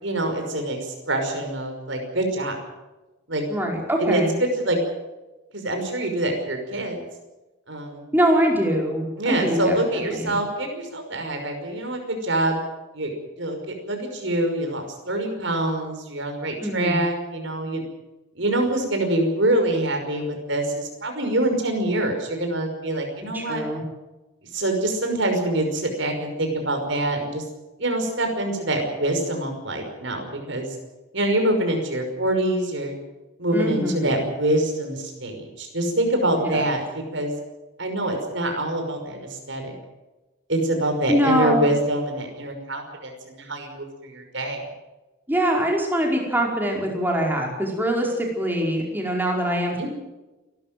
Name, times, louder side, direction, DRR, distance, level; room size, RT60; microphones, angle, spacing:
voice 1, 0.0-2.6 3.3-3.4 4.0-4.8 5.5-7.0 7.7-8.0 9.2-12.6 12.9-13.1 13.4-17.8 18.4-23.6 24.5-27.4 27.8-30.8 31.1-32.9 33.4-36.8 37.1-37.3 37.8-39.7 40.5-44.6 49.8-49.9, right 1 dB, 65° right, 4 dB, 5.7 m, -25 dB
voice 2, 3.5-4.3 8.1-9.8 10.1-10.3 16.6-17.0 23.3-23.8 33.5-34.1 36.4-36.6 41.1-41.7 45.3-49.9, equal, 10° right, 0 dB, 4.9 m, -23 dB
29.0 x 13.0 x 7.8 m, 1.1 s
head